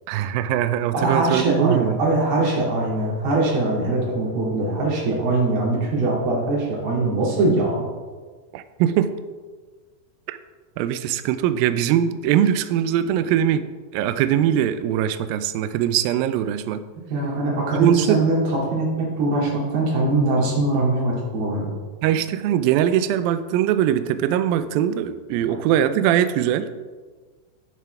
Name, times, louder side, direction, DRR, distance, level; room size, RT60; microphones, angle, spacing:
voice 1, 0.1-2.0 8.5-9.1 10.3-10.4 10.8-13.6 13.9-16.8 17.7-18.3 22.0-26.7, right 10 dB, 90° right, 11 dB, 2.0 m, -21 dB
voice 2, 0.9-7.8 17.1-21.7, right 2 dB, 70° right, -4 dB, 4.4 m, -22 dB
10.5 x 10.0 x 3.4 m, 1.4 s
omnidirectional pair, 4.8 m